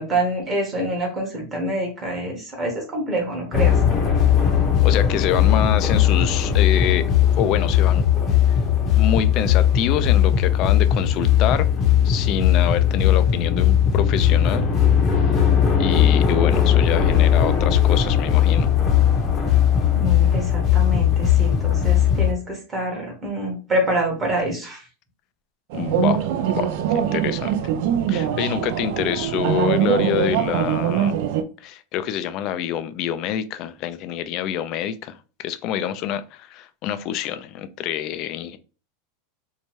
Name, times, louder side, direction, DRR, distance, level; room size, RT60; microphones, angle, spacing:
voice 1, 0.0-3.8 20.0-24.9, right 1 dB, 20° right, 0 dB, 1.0 m, -26 dB
sound 1, 3.5-22.3, left 9 dB, 25° left, 0.7 m, -18 dB
voice 2, 4.8-7.1 7.4-8.0 8.5-8.6 9.0-11.7 12.0-14.6 15.8-18.7 25.7-26.3 26.5-27.5 28.1-31.1 31.6-38.6, left 10 dB, 40° left, 12 dB, 0.3 m, -26 dB
sound 2, 25.7-31.4, right 9 dB, 60° right, 0.3 m, -22 dB
2.7 x 2.2 x 3.0 m, 0.34 s
supercardioid pair, 150°, 0 cm